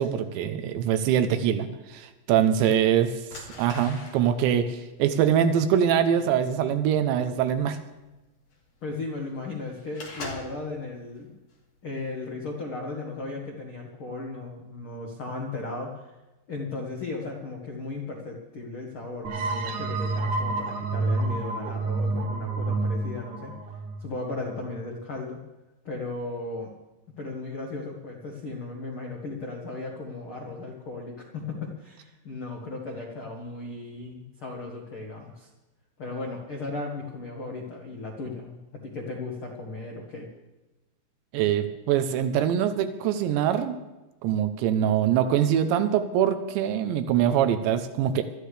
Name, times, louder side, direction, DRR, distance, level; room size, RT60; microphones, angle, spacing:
voice 1, 0.0-3.3 3.6-7.8 41.3-43.8 44.2-48.2, right 9 dB, 85° right, 9 dB, 3.0 m, -23 dB
sound 1, 1.8-1.9 2.6-2.8 3.2-10.7 11.2-11.6 12.0-12.2, left 2 dB, 45° left, 2.9 m, -43 dB
voice 2, 8.8-11.3 11.8-16.2 16.5-23.5 24.0-25.4 25.8-26.7 27.2-35.5 36.0-40.3, left 3 dB, 80° left, -1 dB, 1.1 m, -36 dB
sound 2, 19.2-24.7, right 3 dB, 65° right, 2.0 m, -29 dB
22.5 x 13.0 x 3.3 m, 1.1 s
omnidirectional pair, 5.1 m